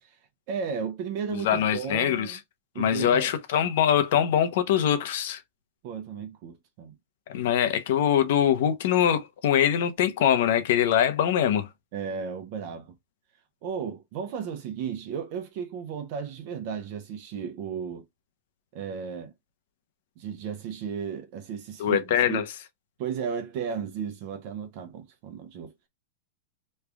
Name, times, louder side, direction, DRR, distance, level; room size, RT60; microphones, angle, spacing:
voice 1, 0.5-2.4 2.7-3.3 5.8-7.0 11.9-12.9 13.6-18.0 18.7-19.3 20.2-22.5 23.0-25.7, right 7 dB, 50° right, 0.8 m, -34 dB
voice 2, 1.3-2.4 2.8-5.4 7.3-11.7 21.8-22.4, left 9 dB, 65° left, 0.8 m, -23 dB
3.2 x 2.4 x 3.4 m
supercardioid pair, 150°, 0 cm